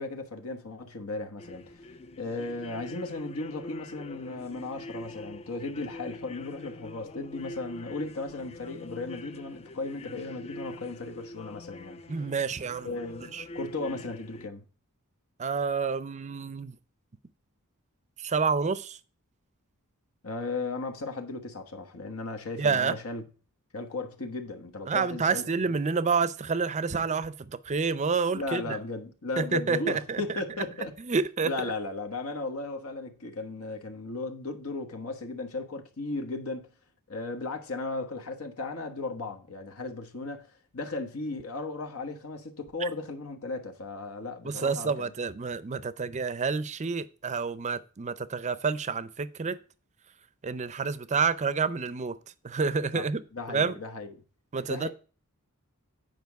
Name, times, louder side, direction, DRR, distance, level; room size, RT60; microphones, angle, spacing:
voice 1, 0.0-1.7 2.2-12.0 12.8-14.6 20.2-23.3 23.7-25.8 28.3-31.0 31.4-36.7 37.1-45.1 52.9-53.1 53.3-54.2 54.7-54.9, left 3 dB, 75° left, 1.2 m, -36 dB
sound 1, 1.4-14.5, left 2 dB, 30° left, 0.4 m, -44 dB
voice 2, 12.1-12.9 13.3-13.4 15.4-16.8 18.2-19.0 22.6-22.9 24.9-28.8 29.4-30.2 31.0-31.5 42.8-42.9 44.4-49.6 50.4-52.2 52.4-53.2 53.5-53.8 54.5-54.9, right 5 dB, 35° right, 0.5 m, -28 dB
9.3 x 5.2 x 4.6 m
head